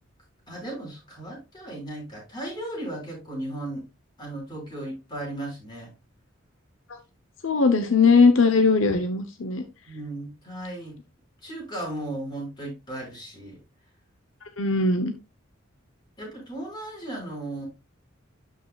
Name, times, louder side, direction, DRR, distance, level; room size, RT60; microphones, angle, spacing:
voice 1, 0.5-3.9 4.2-5.9 9.9-11.0 11.4-13.6 16.2-17.7, right 1 dB, 20° left, -2 dB, 5.5 m, -36 dB
voice 2, 7.4-9.6 14.6-15.1, left 4 dB, 70° left, 7 dB, 0.9 m, -19 dB
12.0 x 5.6 x 2.4 m, 0.27 s
head